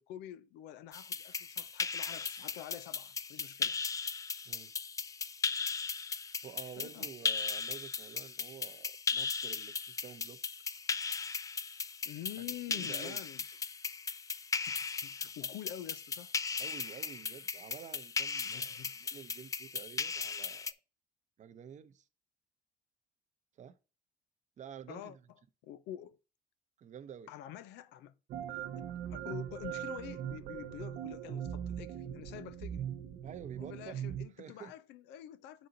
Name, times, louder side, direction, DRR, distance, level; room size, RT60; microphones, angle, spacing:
voice 1, 0.0-3.8 6.8-7.1 12.1-13.4 14.7-16.3 18.4-19.0 24.9-25.2 25.6-26.2 27.3-28.1 28.5-32.9 33.6-35.7, left 11 dB, 85° left, 0.6 m, -47 dB
sound 1, 0.9-20.7, left 5 dB, 20° left, 0.3 m, -37 dB
voice 2, 6.4-10.4 12.7-13.2 16.6-20.7 21.4-22.1 23.6-23.8 24.6-25.2 26.8-27.3 33.2-34.0 34.4-34.7, right 8 dB, 45° right, 0.7 m, -50 dB
sound 2, 28.3-34.3, right 10 dB, 75° right, 0.8 m, -40 dB
7.6 x 4.1 x 3.8 m
cardioid pair, 110°, 17 cm